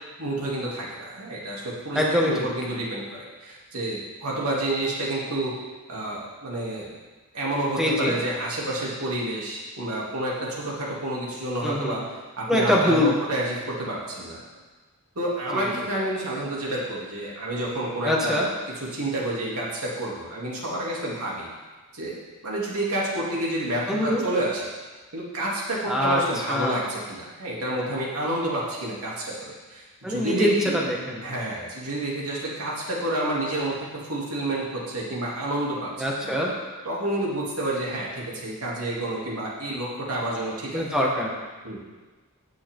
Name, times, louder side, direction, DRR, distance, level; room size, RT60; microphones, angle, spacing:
voice 1, 0.2-5.5 5.9-6.9 7.3-12.0 12.4-14.4 15.1-18.4 18.9-21.5 21.9-22.2 22.4-24.7 25.1-30.8 31.2-36.4 36.8-40.8 41.6-41.8, right 1 dB, 90° right, -5 dB, 3.0 m, -29 dB
voice 2, 2.0-2.3 7.8-8.1 11.6-12.0 12.5-13.1 15.5-15.7 18.0-18.5 23.9-24.2 25.9-26.2 26.5-26.9 30.0-31.2 36.0-36.5 40.7-41.3, left 1 dB, 5° right, -4 dB, 1.8 m, -23 dB
17.0 x 6.7 x 3.8 m, 1.3 s
head